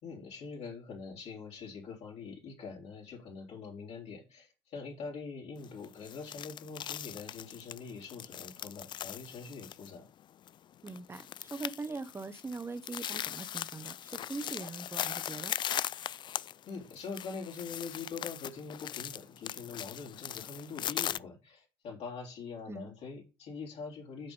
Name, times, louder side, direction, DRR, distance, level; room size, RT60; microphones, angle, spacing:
voice 1, 0.0-10.1 16.7-24.3, left 5 dB, 60° left, 3.3 m, -44 dB
sound 1, 5.6-21.2, left 10 dB, 40° left, 0.3 m, -39 dB
voice 2, 10.8-15.5 22.7-22.9, right 3 dB, 20° right, 1.1 m, -42 dB
8.3 x 5.5 x 5.3 m
hypercardioid pair, 55°, 12 cm